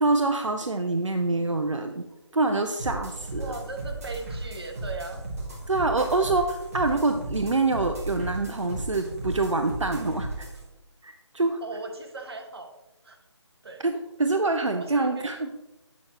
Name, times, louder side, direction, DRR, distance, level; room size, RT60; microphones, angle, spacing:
voice 1, 0.0-2.1 2.3-3.5 5.7-10.5 11.0-11.6 13.8-15.5, right 3 dB, 85° right, 6 dB, 0.6 m, -26 dB
sound 1, 2.8-10.6, right 2 dB, 30° right, 1.5 m, -35 dB
voice 2, 3.4-5.2 11.6-12.7 13.0-13.2 13.6-13.9 14.7-15.4, right 3 dB, 55° right, 3 dB, 1.1 m, -38 dB
8.3 x 5.9 x 2.9 m, 0.99 s
figure-of-eight pair, 155°, 15 cm